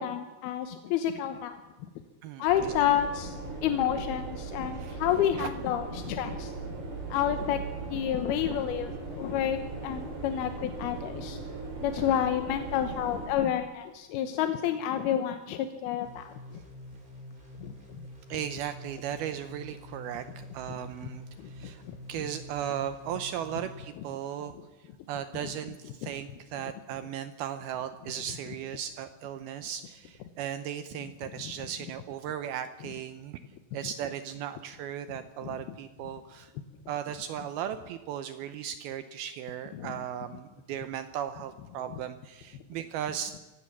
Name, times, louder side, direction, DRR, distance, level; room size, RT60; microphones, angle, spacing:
voice 1, 0.0-1.6 2.4-6.5 7.1-7.6 7.9-11.4 11.8-16.6 17.6-17.7 20.7-20.8 21.4-22.0 35.4-35.6 39.7-39.9, left 10 dB, 75° left, 8 dB, 2.5 m, -30 dB
voice 2, 2.2-2.7 4.6-5.0 5.4-5.5 12.0-12.1 18.3-21.8 22.1-24.5 25.1-33.4 33.7-36.5 36.9-43.3, right 10 dB, 80° right, 10 dB, 2.2 m, -37 dB
sound 1, 2.5-13.3, right 3 dB, 55° right, 5.4 m, -39 dB
sound 2, 16.0-23.8, left 1 dB, 10° right, 3.9 m, -47 dB
24.5 x 16.0 x 7.3 m, 1.2 s
omnidirectional pair, 5.3 m